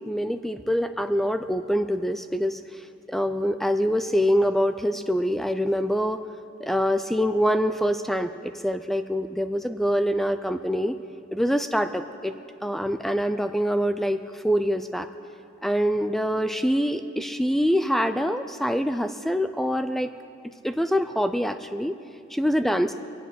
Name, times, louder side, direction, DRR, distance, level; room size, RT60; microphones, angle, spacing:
voice 1, 0.1-6.2 6.6-11.0 11.3-12.3 12.6-15.1 15.6-20.1 20.6-22.0 22.3-22.9, equal, ahead, 9 dB, 0.3 m, -25 dB
23.5 x 8.4 x 5.5 m, 2.6 s
head